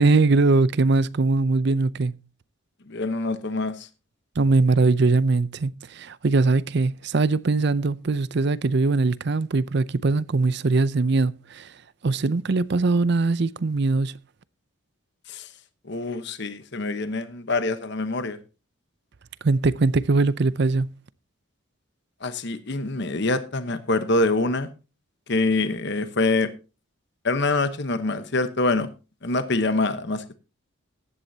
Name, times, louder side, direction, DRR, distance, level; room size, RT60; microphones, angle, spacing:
voice 1, 0.0-2.2 4.4-11.7 12.0-14.2 19.4-20.9, right 3 dB, 55° right, 0.5 m, -21 dB
voice 2, 2.9-3.9 15.3-15.5 15.8-18.4 22.2-24.7 25.3-26.5 27.2-28.9 29.2-30.4, left 2 dB, 55° left, 1.0 m, -25 dB
15.5 x 11.0 x 2.8 m
head